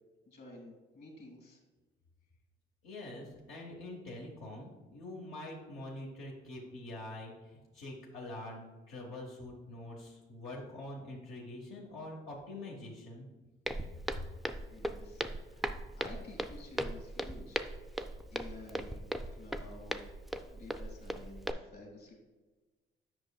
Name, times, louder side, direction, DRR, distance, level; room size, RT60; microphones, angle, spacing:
voice 1, 0.3-1.6 14.7-17.6 18.3-19.0 19.4-20.0 20.5-22.2, left 2 dB, 55° left, 2 dB, 2.0 m, -51 dB
voice 2, 2.8-13.3, left 1 dB, 85° left, -3 dB, 1.1 m, -45 dB
Walk footsteps, 13.7-21.5, right 1 dB, ahead, 0.3 m, -38 dB
7.8 x 5.6 x 2.3 m, 1.2 s
cardioid pair, 90°, 20 cm